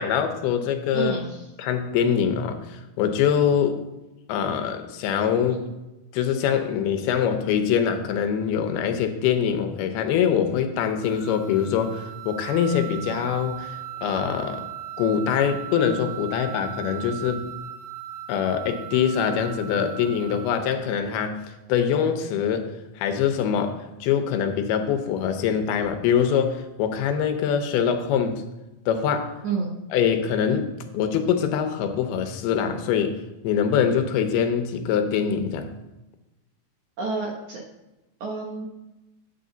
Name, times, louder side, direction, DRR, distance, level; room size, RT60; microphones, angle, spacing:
voice 1, 0.0-1.2 1.6-3.8 4.3-5.8 6.1-14.7 15.0-17.6 18.3-28.4 28.9-29.4 29.9-35.7, left 8 dB, 80° left, 7 dB, 2.7 m, -24 dB
voice 2, 0.9-1.4 29.4-29.7 37.0-37.6 38.2-38.7, right 4 dB, 65° right, -1 dB, 2.0 m, -29 dB
sound 1, 11.0-20.6, right 12 dB, 5° left, 0.8 m, -38 dB
9.5 x 8.4 x 3.9 m, 1.0 s
omnidirectional pair, 4.5 m